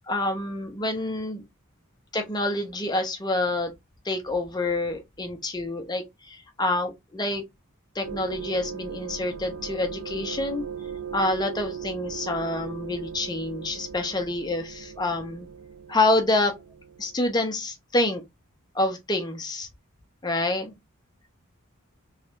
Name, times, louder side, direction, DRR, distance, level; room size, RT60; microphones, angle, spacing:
voice 1, 0.1-1.4 2.1-3.7 4.0-7.4 7.9-10.6 11.1-15.5 15.9-16.5 17.0-18.2 18.7-19.7 20.2-20.7, left 2 dB, 20° left, 0.7 m, -27 dB
sound 1, 8.0-17.2, right 7 dB, 80° right, 0.5 m, -38 dB
3.2 x 3.2 x 2.5 m
head